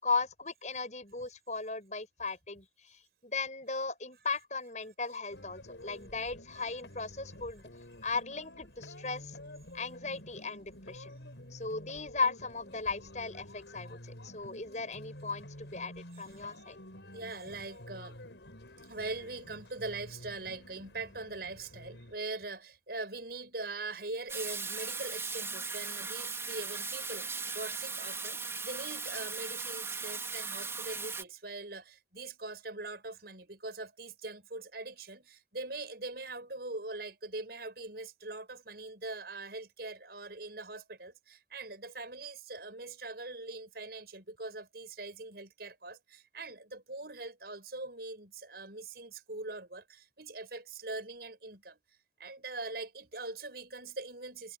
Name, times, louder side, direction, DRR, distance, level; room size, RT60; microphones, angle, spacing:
voice 1, 0.0-7.6 8.0-9.4 9.7-11.1 11.5-16.8, left 4 dB, 40° left, 8.0 m, -37 dB
sound 1, 5.3-22.2, left 1 dB, 80° left, 5.4 m, -50 dB
voice 2, 17.1-18.2 18.8-51.8 52.2-54.6, right 3 dB, 60° right, 6.5 m, -42 dB
Water tap faucet / Sink (filling or washing), 24.3-31.2, right 4 dB, 15° right, 4.4 m, -38 dB
head